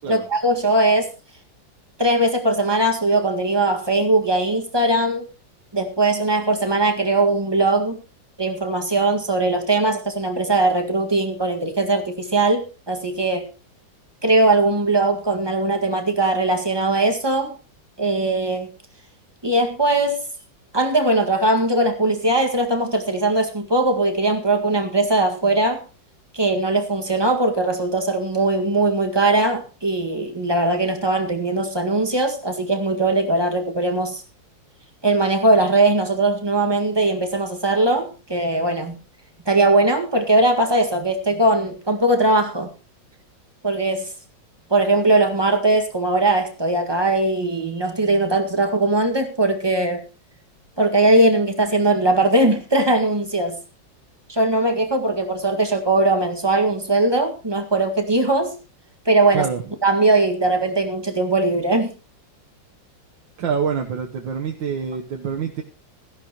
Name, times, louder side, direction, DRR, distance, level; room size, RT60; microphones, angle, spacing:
voice 1, 0.1-1.1 2.0-5.3 5.7-8.0 8.4-13.5 14.2-17.5 18.0-18.7 19.4-20.2 20.7-25.8 26.3-34.2 35.0-39.0 39.5-42.7 43.6-44.1 44.7-50.0 50.8-53.6 54.3-58.5 59.1-59.5 59.8-61.9, right 2 dB, 15° right, 1.7 m, -20 dB
voice 2, 63.4-65.6, right 6 dB, 80° right, 1.8 m, -26 dB
17.0 x 14.0 x 3.0 m
omnidirectional pair, 2.0 m